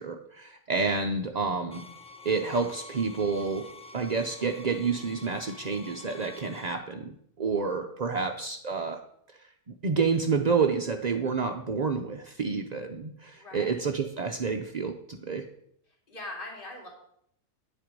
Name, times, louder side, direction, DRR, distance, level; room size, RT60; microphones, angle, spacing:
voice 1, 0.0-1.9 2.2-3.6 3.9-9.0 9.3-15.4, right 5 dB, 50° right, 3 dB, 0.5 m, -29 dB
sound 1, 1.7-6.8, left 2 dB, 5° left, 0.7 m, -47 dB
voice 2, 13.3-13.9 15.9-16.9, left 2 dB, 35° left, -1 dB, 2.7 m, -42 dB
10.0 x 7.7 x 5.2 m, 0.70 s
omnidirectional pair, 1.6 m